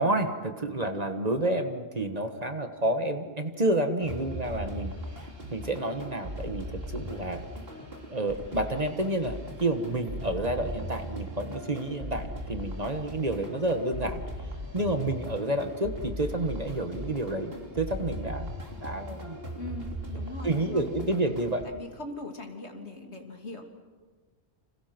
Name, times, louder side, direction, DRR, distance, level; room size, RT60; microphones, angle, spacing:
voice 1, 0.0-4.9 5.5-7.4 8.1-14.2 14.7-18.5 18.8-19.4 20.4-21.6, right 1 dB, 35° right, 7 dB, 1.6 m, -29 dB
sound 1, 4.0-21.6, equal, 55° right, 3.6 m, -39 dB
voice 2, 19.6-20.9 21.6-23.6, left 2 dB, 70° left, 3 dB, 3.3 m, -40 dB
29.5 x 27.0 x 6.1 m, 1.4 s
omnidirectional pair, 1.2 m